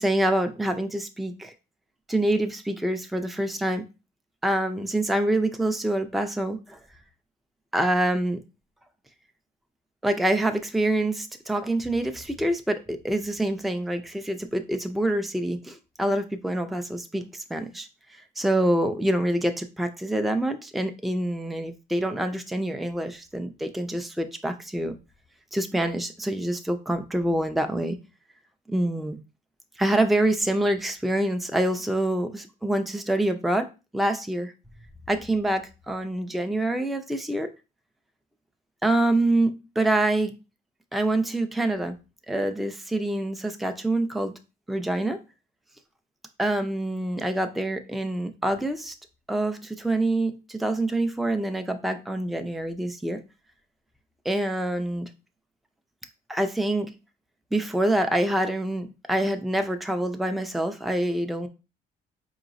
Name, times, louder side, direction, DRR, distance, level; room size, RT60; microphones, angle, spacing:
voice 1, 0.0-1.5 2.1-3.8 4.4-6.8 7.7-8.4 10.0-17.2 17.5-17.9 18.4-25.0 25.5-28.0 28.7-29.2 29.8-34.5 35.1-37.5 38.8-40.4 40.9-42.0 42.3-44.3 44.7-45.2 46.4-48.9 49.3-53.2 54.2-55.1 56.3-56.9 57.5-61.5, right 1 dB, ahead, 7 dB, 0.5 m, -26 dB
4.7 x 2.9 x 2.6 m, 0.29 s
cardioid pair, 90°, 20 cm